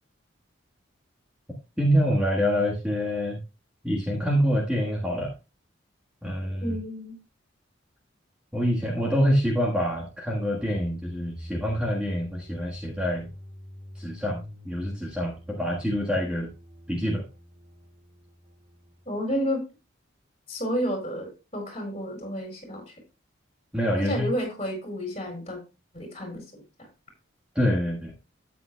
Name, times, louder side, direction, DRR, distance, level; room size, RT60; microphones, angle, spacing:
voice 1, 1.8-3.4 3.8-5.3 6.2-6.8 8.5-13.3 13.9-16.5 16.9-17.2 23.7-24.3 27.5-28.1, equal, 5° right, -3 dB, 1.4 m, -26 dB
voice 2, 6.6-7.2 19.1-19.6 20.5-22.8 24.0-25.6 25.9-26.4, equal, 30° left, 2 dB, 4.6 m, -30 dB
sound 1, 10.6-19.4, equal, 35° right, 2.2 m, -45 dB
12.5 x 8.6 x 2.2 m, 0.28 s
head